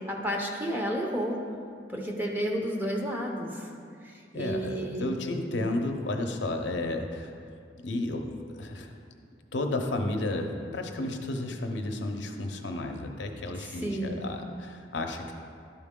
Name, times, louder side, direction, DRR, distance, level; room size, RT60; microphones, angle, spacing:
voice 1, 0.0-1.4 1.9-3.6 4.3-5.0 5.6-5.7 13.8-14.3, equal, 10° right, 0 dB, 0.7 m, -31 dB
voice 2, 4.3-7.4 7.8-9.0 9.5-15.3, left 2 dB, 75° left, 3 dB, 0.7 m, -32 dB
11.5 x 4.5 x 3.7 m, 2.3 s
head